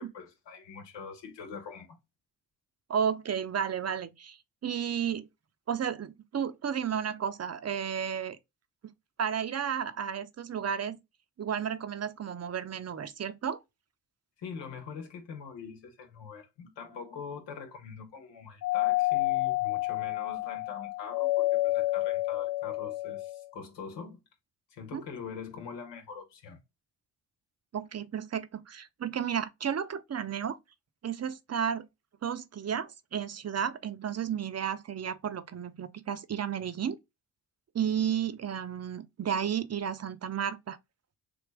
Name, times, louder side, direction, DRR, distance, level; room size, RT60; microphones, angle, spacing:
voice 1, 0.0-2.0 14.4-24.2 24.7-26.6, left 6 dB, 80° left, 1.2 m, -43 dB
voice 2, 2.9-4.4 4.6-5.3 5.7-8.4 9.2-11.0 11.4-13.6 24.9-25.0 27.7-30.6 31.0-31.9 32.2-37.0 37.7-40.8, right 8 dB, 35° right, 0.7 m, -32 dB
Doorbell, 18.6-23.5, left 18 dB, 40° left, 0.5 m, -29 dB
3.5 x 2.5 x 3.2 m
supercardioid pair, 40°, 43 cm